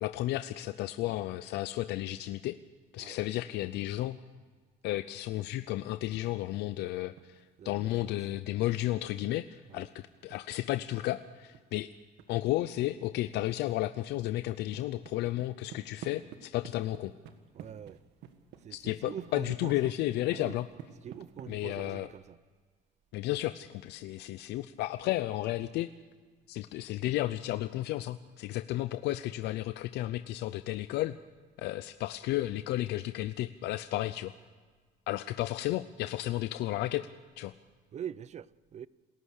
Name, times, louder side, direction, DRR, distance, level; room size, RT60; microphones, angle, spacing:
voice 1, 0.0-2.6 2.9-4.2 4.8-11.9 12.3-17.1 18.7-20.6 21.5-22.1 23.1-25.9 26.5-31.2 31.6-34.3 35.1-37.1 37.4-37.5, left 15 dB, 85° left, 0.6 m, -33 dB
sound 1, 6.7-7.5 7.8-12.3 12.8-12.9 13.2-13.8 14.0-21.5, right 9 dB, 85° right, 1.7 m, -52 dB
voice 2, 7.6-8.3 9.7-9.9 17.5-18.0 18.6-19.9 20.3-20.6 21.0-22.4 37.9-38.9, right 9 dB, 40° right, 0.7 m, -44 dB
27.5 x 14.5 x 6.5 m
cardioid pair, 110°, 17 cm